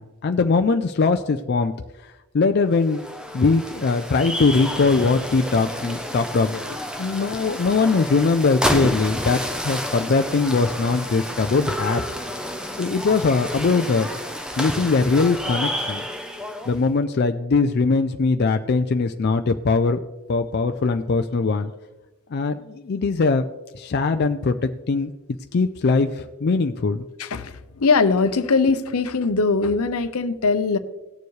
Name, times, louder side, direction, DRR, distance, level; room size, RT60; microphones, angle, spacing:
voice 1, 0.0-1.7 2.0-3.0 3.3-12.0 12.8-14.1 14.6-16.0 16.7-20.0 20.3-21.7 22.3-23.5 23.7-25.1 25.5-27.0, left 4 dB, 45° left, 7 dB, 0.4 m, -21 dB
sound 1, 2.7-16.8, equal, 5° right, 0.7 m, -30 dB
voice 2, 27.2-30.8, left 4 dB, 75° left, 11 dB, 0.7 m, -21 dB
17.5 x 6.9 x 3.2 m, 1.1 s
head